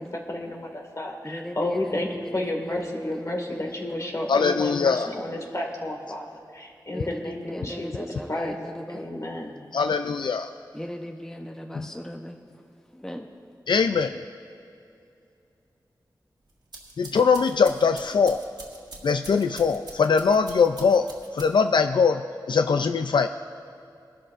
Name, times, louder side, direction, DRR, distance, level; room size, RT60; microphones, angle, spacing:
voice 1, 0.0-6.3 6.5-8.6 8.9-9.6, left 1 dB, 40° left, 1 dB, 1.9 m, -32 dB
voice 2, 1.2-4.1 6.9-9.0 10.7-12.7 12.9-13.3, equal, 5° left, 3 dB, 0.8 m, -37 dB
voice 3, 4.3-5.1 9.7-10.5 11.8-11.9 13.7-14.1 17.0-18.4 19.0-21.1 21.3-22.2 22.5-23.3, left 5 dB, 75° left, 8 dB, 0.4 m, -21 dB
sound 1, 16.5-21.8, right 2 dB, 65° right, 1.8 m, -45 dB
22.5 x 12.0 x 2.5 m, 2.5 s
wide cardioid pair, 75°, 8 cm